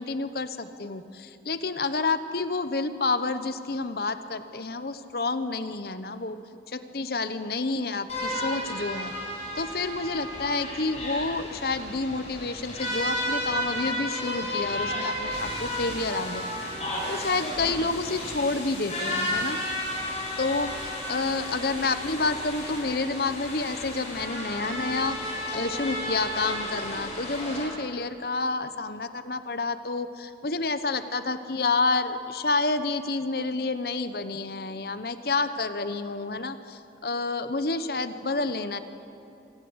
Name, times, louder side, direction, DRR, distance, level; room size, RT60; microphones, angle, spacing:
voice 1, 0.0-6.4 6.7-9.1 9.6-16.5 17.1-19.6 20.4-38.8, left 3 dB, 55° left, 11 dB, 0.9 m, -29 dB
sound 1, 8.1-27.6, left 1 dB, 35° left, 7.8 m, -33 dB
26.5 x 18.5 x 8.0 m, 2.6 s
head